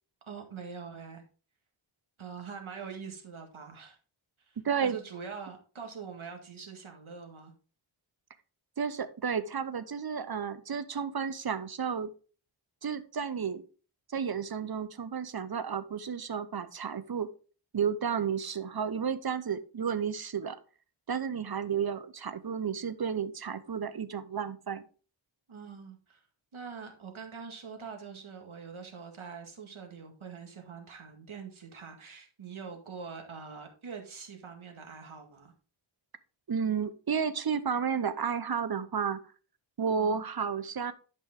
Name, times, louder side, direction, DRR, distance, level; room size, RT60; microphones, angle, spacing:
voice 1, 0.3-1.2 2.2-4.0 4.4-7.5 25.5-26.2 26.5-35.5 39.9-40.2, right 5 dB, 90° right, 3 dB, 2.0 m, -44 dB
voice 2, 4.6-5.0 8.8-12.1 12.8-13.6 14.1-17.3 17.7-20.6 21.1-24.8 36.5-39.2 39.8-40.9, right 6 dB, 50° right, 13 dB, 0.9 m, -32 dB
11.0 x 5.3 x 3.7 m, 0.37 s
wide cardioid pair, 90°, 47 cm